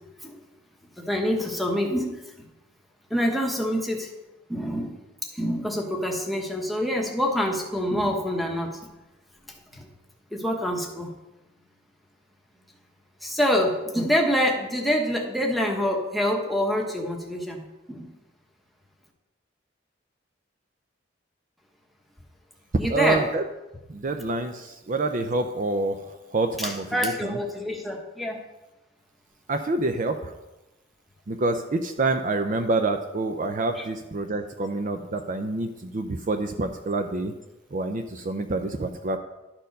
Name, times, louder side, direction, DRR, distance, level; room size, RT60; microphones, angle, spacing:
voice 1, 1.0-2.2 3.1-4.1 4.5-4.9 5.3-8.8 9.7-9.9 10.3-11.1 13.2-17.6 17.9-18.1 22.8-23.3 26.6-28.4 33.8-33.9, equal, ahead, 0 dB, 1.0 m, -26 dB
voice 2, 22.9-23.4 23.9-27.4 29.5-30.3 31.3-37.3 37.7-39.2, right 2 dB, 40° right, 6 dB, 0.5 m, -27 dB
11.5 x 4.5 x 5.2 m, 1.0 s
head